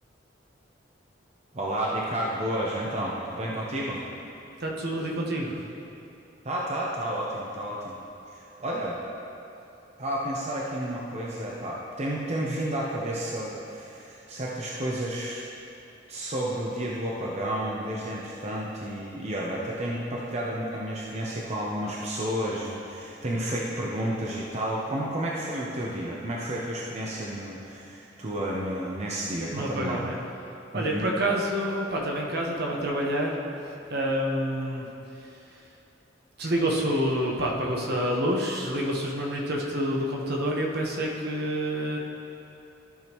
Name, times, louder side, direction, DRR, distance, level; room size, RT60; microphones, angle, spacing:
voice 1, 1.5-4.0 6.4-8.0 8.3-9.0 10.0-15.4 16.1-30.0 30.7-31.1, right 1 dB, 35° right, -4 dB, 0.8 m, -31 dB
voice 2, 4.6-5.6 29.5-30.2 30.7-33.4 33.9-34.9 35.1-35.6 36.4-42.0, equal, 60° right, -1 dB, 1.1 m, -28 dB
14.0 x 6.2 x 3.0 m, 2.8 s
head